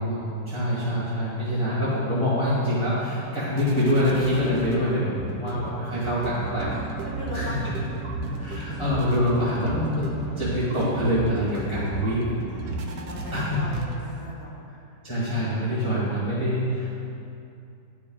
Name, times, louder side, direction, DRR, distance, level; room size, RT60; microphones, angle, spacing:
voice 1, 0.0-6.7 7.3-7.5 8.2-12.3 13.3-13.8 15.0-17.0, equal, 20° left, -11 dB, 1.3 m, -25 dB
sound 1, 1.9-14.3, right 3 dB, 70° right, 1.2 m, -35 dB
sound 2, 6.2-14.2, right 3 dB, 45° right, 1.4 m, -40 dB
voice 2, 7.0-7.7 12.5-14.6, left 2 dB, 45° left, -3 dB, 0.9 m, -39 dB
10.5 x 4.9 x 2.3 m, 2.7 s
omnidirectional pair, 1.9 m